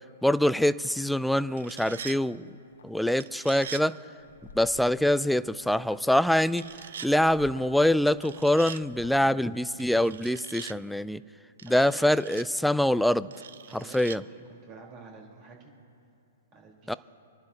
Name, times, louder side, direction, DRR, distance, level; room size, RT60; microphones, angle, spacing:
voice 1, 0.2-2.4 2.8-3.9 4.6-6.7 7.0-11.2 11.7-13.3 13.7-14.2 16.9-17.0, left 1 dB, ahead, 16 dB, 0.3 m, -24 dB
sound 1, 1.4-2.2 3.2-3.9 6.5-7.1 8.1-8.8 9.8-10.8 11.6-12.5 13.3-14.2, right 8 dB, 70° right, 0.5 m, -42 dB
sound 2, 2.5-3.2 3.7-3.9 4.2-5.3 5.6-9.3, left 1 dB, 85° left, 1.2 m, -51 dB
voice 2, 11.7-12.1 13.7-15.7 16.5-17.0, right 4 dB, 35° right, -1 dB, 4.1 m, -49 dB
28.0 x 11.5 x 2.9 m, 2.6 s
hypercardioid pair, 120°, 0 cm